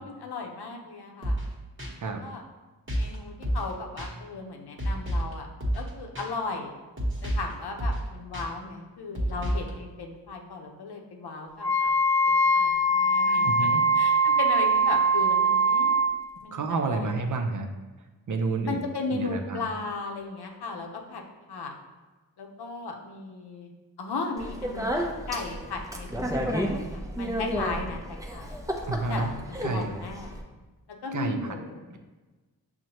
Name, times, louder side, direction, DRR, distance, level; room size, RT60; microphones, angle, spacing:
voice 1, 0.0-1.4 2.2-2.4 2.9-5.5 5.7-6.8 7.2-11.9 12.3-13.7 14.0-16.0 16.4-16.6 16.8-17.2 18.6-21.2 21.5-21.7 22.4-23.7 24.0-24.9 25.3-28.6 29.1-30.3 31.0-31.9, left 3 dB, 75° left, 2 dB, 0.7 m, -36 dB
sound 1, 1.2-1.5 1.8-1.9 2.9-3.1 3.4-3.7 4.0-4.1 4.8-5.3 5.6-5.9 6.1-6.3 7.0-7.5 7.8-8.0 8.3-8.4 9.1-9.7, equal, 30° right, 1.0 m, -29 dB
Wind instrument woodwind instrument, 11.6-16.1, right 2 dB, 45° left, 1.0 m, -22 dB
voice 2, 13.4-13.8 16.5-17.7 18.3-18.8 19.1-19.7 28.9-29.3 29.6-29.9 31.1-31.5 31.9-32.0, right 3 dB, 50° right, 5 dB, 0.5 m, -29 dB
Speech, 24.4-30.4, equal, 10° right, 0.5 m, -32 dB
6.2 x 2.1 x 2.9 m, 1.2 s
cardioid pair, 45°, 39 cm